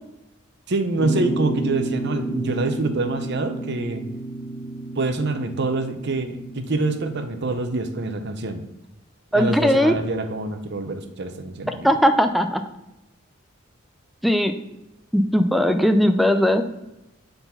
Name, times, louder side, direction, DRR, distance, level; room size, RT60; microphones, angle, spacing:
voice 1, 0.7-4.1 4.9-8.6 9.3-11.9, right 2 dB, 55° right, 8 dB, 0.7 m, -26 dB
sound 1, 1.0-7.4, right 2 dB, 80° left, 1.3 m, -31 dB
voice 2, 9.3-9.9 11.8-12.6 14.2-14.5 15.1-16.6, equal, ahead, 8 dB, 0.4 m, -18 dB
6.9 x 3.9 x 5.5 m, 0.93 s
head